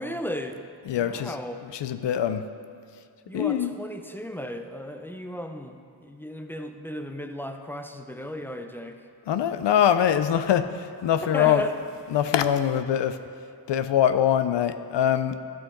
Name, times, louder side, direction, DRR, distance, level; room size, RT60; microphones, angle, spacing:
voice 1, 0.0-1.6 3.3-9.0 11.2-11.8, equal, 5° left, 6 dB, 0.4 m, -35 dB
voice 2, 0.8-2.4 3.3-3.8 9.3-11.6 12.1-13.2 13.7-15.4, left 9 dB, 90° left, 10 dB, 0.5 m, -23 dB
12.5 x 6.1 x 3.8 m, 2.2 s
wide cardioid pair, 95°, 41 cm